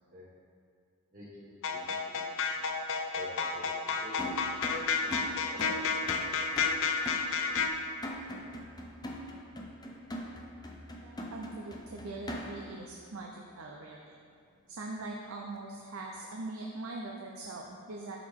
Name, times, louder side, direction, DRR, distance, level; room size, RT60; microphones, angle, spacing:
voice 1, 1.1-2.8 3.1-4.4 5.0-5.1 5.5-5.9, left 1 dB, 40° right, -9 dB, 1.5 m, -50 dB
sound 1, 1.6-7.7, left 5 dB, 60° left, 0.5 m, -31 dB
sound 2, 4.2-12.8, equal, 20° left, 0.6 m, -42 dB
voice 2, 11.0-14.1 14.7-18.2, right 2 dB, 65° right, 0 dB, 0.6 m, -42 dB
11.0 x 4.7 x 3.6 m, 2.2 s
head